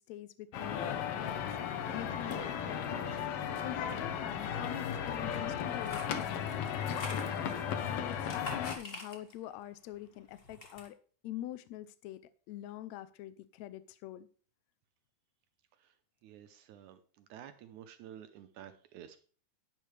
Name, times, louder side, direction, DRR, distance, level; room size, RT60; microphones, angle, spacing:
voice 1, 0.0-1.5 1.9-3.1 3.6-6.6 7.0-7.6 7.9-11.0 11.2-12.2 12.5-14.3, left 13 dB, 85° left, 13 dB, 1.5 m, -45 dB
sound 1, 0.5-8.7, left 8 dB, 70° left, 1.4 m, -35 dB
sound 2, 5.7-7.7 8.1-9.5 9.9-10.9, left 2 dB, 25° left, 1.4 m, -46 dB
voice 2, 16.2-17.0 17.3-19.2, right 10 dB, 75° right, 9 dB, 2.0 m, -51 dB
11.0 x 10.5 x 3.3 m, 0.42 s
omnidirectional pair, 3.8 m